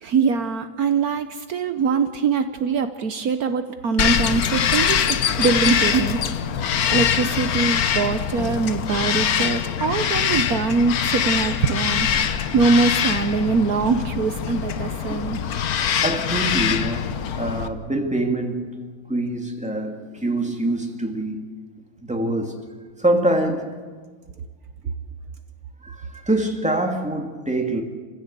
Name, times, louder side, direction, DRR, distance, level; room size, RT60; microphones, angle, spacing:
voice 1, 0.0-6.2 6.9-12.1 12.5-15.4, right 4 dB, 65° right, 9 dB, 1.4 m, -22 dB
Bird vocalization bird call bird song, 4.0-17.7, left 8 dB, 65° left, 1.4 m, -23 dB
sound 1, 4.0-4.4 5.4-6.0 6.9-7.5 8.4-8.9 9.4-9.7, left 4 dB, 20° left, 1.0 m, -35 dB
voice 2, 15.7-21.4 22.0-22.7 23.0-23.8 25.8-27.8, right 1 dB, 5° right, 3 dB, 2.3 m, -25 dB
28.5 x 15.5 x 8.3 m, 1.5 s
omnidirectional pair, 1.7 m